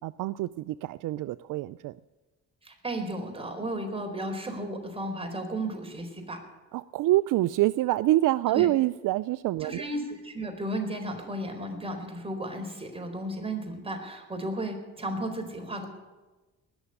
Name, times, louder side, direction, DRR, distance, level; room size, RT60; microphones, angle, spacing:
voice 1, 0.0-2.0 6.7-9.9, right 16 dB, 65° right, 16 dB, 0.5 m, -26 dB
voice 2, 2.6-6.4 8.5-8.7 9.6-15.9, right 1 dB, 15° right, 3 dB, 4.2 m, -34 dB
20.0 x 7.1 x 10.0 m, 1.2 s
supercardioid pair, 70°, 34 cm